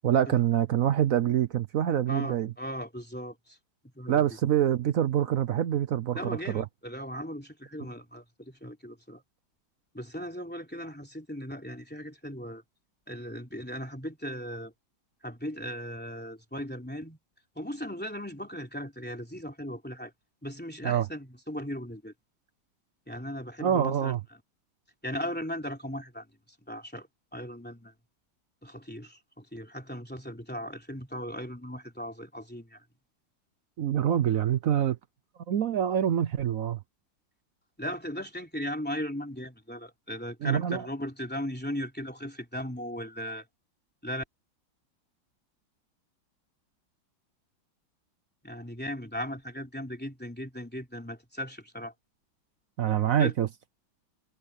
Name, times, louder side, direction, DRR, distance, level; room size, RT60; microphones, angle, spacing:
voice 1, 0.0-2.5 4.1-6.6 20.8-21.1 23.6-24.2 33.8-35.0 35.5-36.8 40.4-40.9 52.8-53.5, right 10 dB, 70° right, 0.8 m, -25 dB
voice 2, 2.1-3.6 3.9-4.3 6.1-9.2 9.9-12.6 13.1-14.7 15.2-17.2 17.5-20.1 20.4-22.1 23.1-24.1 25.0-26.3 26.7-27.1 27.3-27.9 28.6-32.8 37.8-43.4 44.0-44.2 48.4-51.9 53.0-53.3, equal, 5° left, 3.0 m, -37 dB
omnidirectional pair, 2.2 m